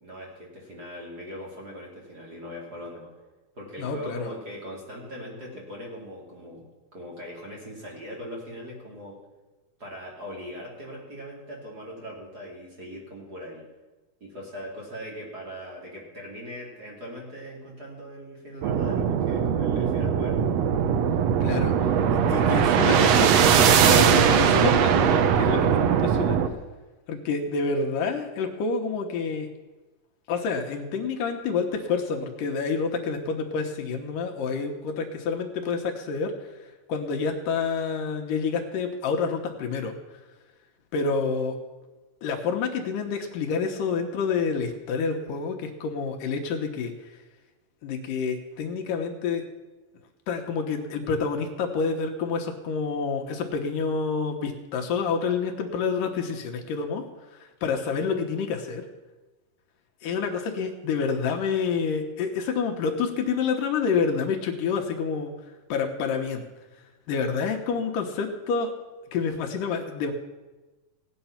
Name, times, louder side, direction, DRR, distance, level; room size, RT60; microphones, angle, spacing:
voice 1, 0.0-3.1 3.5-6.6 6.9-9.2 9.8-13.6 14.2-20.4, equal, 30° right, -3 dB, 2.7 m, -40 dB
voice 2, 3.8-4.3 21.4-21.7 22.1-26.4 27.1-29.5 30.3-36.3 36.6-40.0 40.9-41.5 42.2-46.9 47.8-49.4 50.3-57.0 57.3-58.8 60.0-65.3 65.7-66.5 67.1-68.7 69.1-70.1, left 5 dB, 70° left, 3 dB, 2.6 m, -28 dB
sound 1, 18.6-26.5, right 8 dB, 80° right, 1.5 m, -20 dB
17.0 x 9.3 x 5.8 m, 1.2 s
omnidirectional pair, 4.0 m